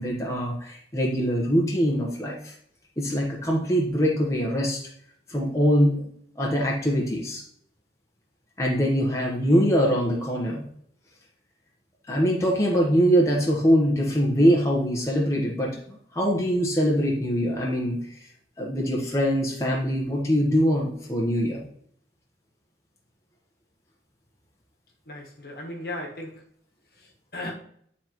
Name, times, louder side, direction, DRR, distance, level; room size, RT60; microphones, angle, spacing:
voice 1, 0.0-2.5 3.0-4.8 5.3-6.1 6.4-7.4 8.6-10.6 12.1-15.8 16.1-18.2 18.6-21.6, equal, 15° left, -2 dB, 1.1 m, -23 dB
voice 2, 25.1-26.4 27.0-27.5, left 1 dB, 60° left, 0 dB, 1.4 m, -36 dB
9.8 x 4.2 x 3.0 m, 0.66 s
head